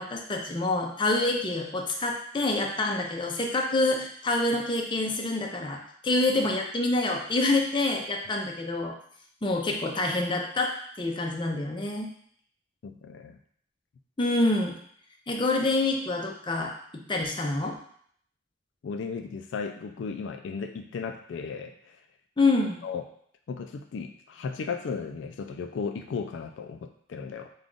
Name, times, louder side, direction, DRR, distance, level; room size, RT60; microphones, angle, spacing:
voice 1, 0.0-8.9 9.4-12.1 14.2-14.7 15.3-17.7 22.4-22.8, left 2 dB, 25° left, 1 dB, 0.5 m, -27 dB
voice 2, 12.8-13.4 18.8-22.0 22.8-23.0 23.5-27.5, left 5 dB, 75° left, 6 dB, 0.3 m, -35 dB
5.1 x 2.3 x 3.7 m, 0.63 s
head